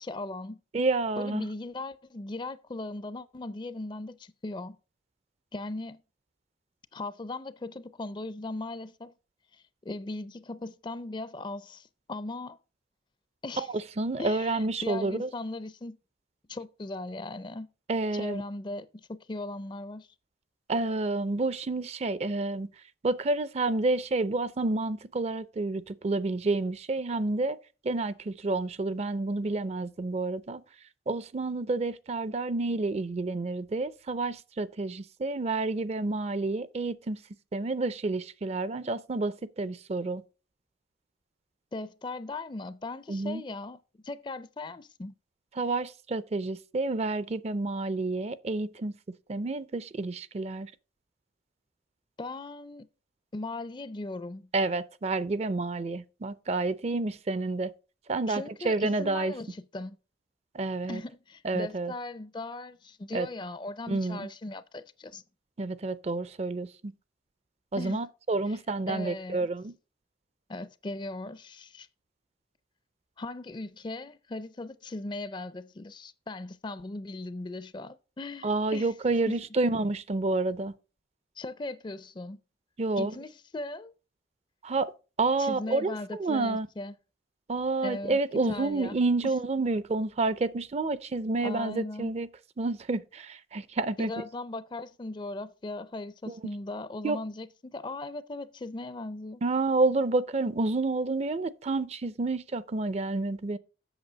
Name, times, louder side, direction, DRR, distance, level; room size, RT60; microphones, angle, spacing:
voice 1, 0.0-0.6 1.2-4.8 5.5-6.0 6.9-9.1 9.5-12.6 13.4-13.7 14.2-16.0 16.5-17.7 18.1-20.1 41.7-45.2 52.2-52.9 53.3-54.5 58.3-60.0 60.9-65.2 67.8-68.0 68.5-68.6 68.9-69.5 70.5-71.9 73.2-78.9 79.3-79.4 81.4-82.4 83.0-83.9 85.4-86.9 87.8-88.2 88.5-89.0 89.2-89.3 91.4-92.1 94.0-99.4, left 2 dB, 25° left, 0.4 m, -38 dB
voice 2, 0.7-1.5 13.6-15.3 17.9-18.4 20.7-22.7 23.0-27.6 27.8-30.6 31.1-37.2 37.5-40.2 43.1-43.4 45.6-48.9 49.3-50.7 54.5-57.7 58.1-59.3 60.5-61.0 61.4-61.9 63.1-63.3 63.9-64.3 65.6-66.9 67.7-69.7 78.4-80.7 82.8-83.1 84.6-84.9 85.2-86.7 87.5-92.3 92.6-94.1 96.3-96.4 97.0-97.2 99.4-103.6, right 3 dB, 35° right, 0.4 m, -29 dB
8.0 x 6.6 x 5.1 m
head